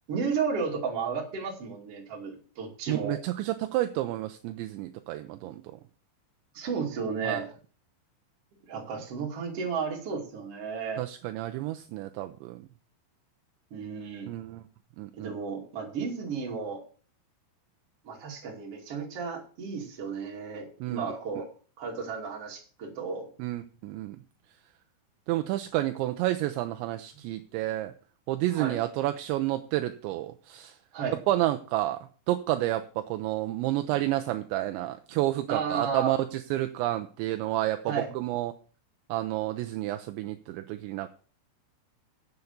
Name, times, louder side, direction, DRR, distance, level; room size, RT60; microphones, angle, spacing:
voice 1, 0.1-3.2 6.5-7.5 8.6-11.0 13.7-14.3 15.1-16.8 18.0-21.5 21.8-23.3 28.5-28.8 30.9-31.2 35.5-36.2 37.9-38.1, right 5 dB, 40° right, -1 dB, 2.8 m, -33 dB
voice 2, 2.9-5.6 7.2-7.4 11.0-12.6 14.3-14.6 15.0-15.3 20.8-21.1 23.4-24.2 25.3-27.9 28.3-30.8 31.3-32.0 32.3-38.5 39.1-41.1, right 15 dB, 80° right, 7 dB, 2.8 m, -30 dB
8.2 x 7.9 x 7.1 m, 0.40 s
omnidirectional pair, 5.5 m